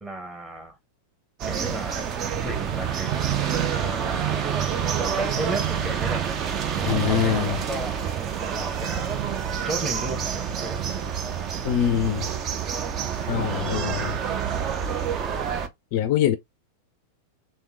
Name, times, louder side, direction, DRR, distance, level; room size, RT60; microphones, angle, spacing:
voice 1, 0.0-0.8 1.4-3.4 3.7-4.7 5.0-6.3 6.8-9.2 9.6-10.8 13.5-13.9, right 1 dB, 15° right, 1.3 m, -35 dB
sound 1, 1.4-15.7, right 8 dB, 30° right, 0.6 m, -27 dB
voice 2, 6.8-7.6 11.6-12.3 13.3-14.2 15.9-16.4, left 10 dB, 45° left, 0.4 m, -24 dB
3.5 x 2.9 x 3.0 m
figure-of-eight pair, 90°, 0 cm